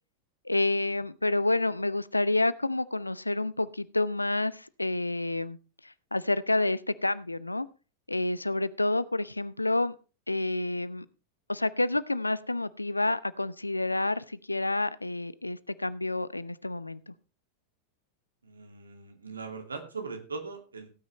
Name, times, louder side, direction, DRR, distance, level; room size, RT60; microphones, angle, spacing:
voice 1, 0.4-5.6 5.8-7.7 8.1-9.9 10.3-11.1 11.5-17.1, left 2 dB, 85° left, 18 dB, 0.5 m, -29 dB
voice 2, 18.4-20.9, right 4 dB, 75° right, 5 dB, 2.4 m, -40 dB
16.5 x 9.4 x 3.1 m, 0.32 s
figure-of-eight pair, 90°, 0 cm